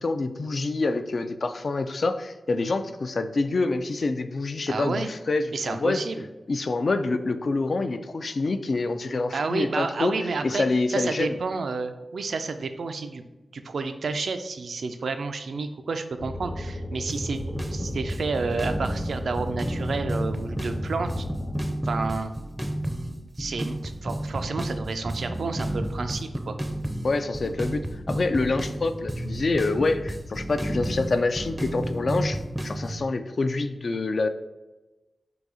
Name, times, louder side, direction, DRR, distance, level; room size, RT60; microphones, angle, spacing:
voice 1, 0.0-6.0 6.5-10.1 10.4-11.4 27.0-34.3, left 3 dB, 60° left, 9 dB, 0.3 m, -26 dB
voice 2, 4.7-5.1 5.5-6.3 9.3-13.3 13.5-21.2 21.8-22.3 23.4-26.6, right 4 dB, 85° right, 8 dB, 0.4 m, -30 dB
sound 1, 16.2-21.7, left 1 dB, 90° left, 0.9 m, -34 dB
sound 2, 17.1-33.0, right 1 dB, 10° right, 0.5 m, -31 dB
3.9 x 2.7 x 4.8 m, 1.1 s
wide cardioid pair, 95°, 0 cm